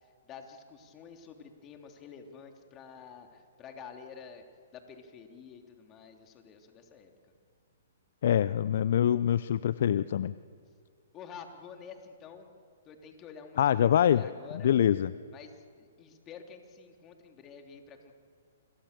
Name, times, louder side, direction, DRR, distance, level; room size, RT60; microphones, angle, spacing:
voice 1, 0.0-4.4 4.7-7.1 11.1-12.5 12.8-14.7 15.3-18.1, left 6 dB, 25° left, 4 dB, 3.2 m, -49 dB
voice 2, 8.2-10.3 13.6-14.2 14.6-15.1, left 10 dB, 60° left, 16 dB, 0.6 m, -24 dB
29.0 x 23.5 x 6.9 m, 2.2 s
hypercardioid pair, 125°, 0 cm